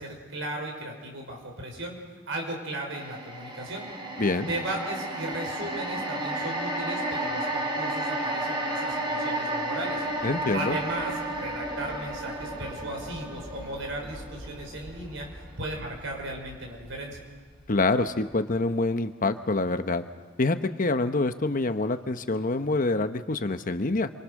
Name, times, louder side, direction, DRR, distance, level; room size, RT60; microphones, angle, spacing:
voice 1, 0.0-2.0 2.3-3.9 4.5-10.0 10.5-15.3 15.6-17.2, right 1 dB, 70° right, 1 dB, 5.5 m, -36 dB
sound 1, 2.9-17.2 17.6-17.8, right 1 dB, 25° right, 4.5 m, -33 dB
voice 2, 4.2-4.5 10.2-10.8 17.7-20.0 20.4-24.1, left 2 dB, 45° left, 9 dB, 1.0 m, -26 dB
27.5 x 24.5 x 6.5 m, 1.4 s
head